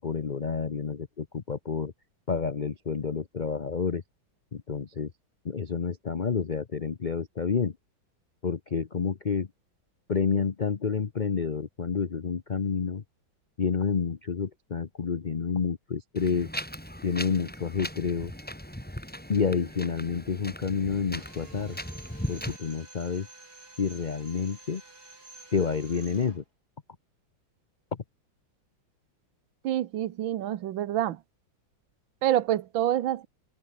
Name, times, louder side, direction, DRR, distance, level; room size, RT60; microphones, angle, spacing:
voice 1, 0.0-1.9 2.3-4.0 4.5-5.1 5.4-7.7 8.4-9.5 10.1-13.0 13.6-16.5 17.0-18.3 19.3-21.8 22.3-23.3 23.8-24.8 25.5-26.4, left 6 dB, 70° left, 0.4 m, -29 dB
Wind, 16.2-22.6, equal, 5° left, 3.6 m, -39 dB
Drill, 21.1-26.4, right 2 dB, 50° right, 6.0 m, -50 dB
voice 2, 29.6-31.2 32.2-33.3, right 12 dB, 80° right, 1.7 m, -27 dB
omnidirectional pair, 2.1 m